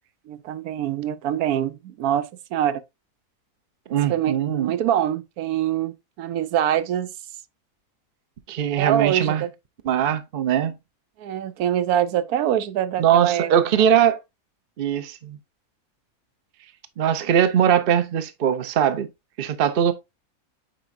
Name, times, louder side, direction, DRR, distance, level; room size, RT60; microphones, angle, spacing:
voice 1, 0.3-2.8 4.1-7.1 8.8-9.5 11.2-13.5, right 10 dB, 85° right, 1.1 m, -24 dB
voice 2, 3.9-4.7 8.5-9.4 9.8-10.7 13.0-14.2 14.8-15.4 17.0-19.1 19.4-19.9, right 9 dB, 50° right, 0.8 m, -21 dB
9.1 x 4.5 x 2.5 m
omnidirectional pair, 1.5 m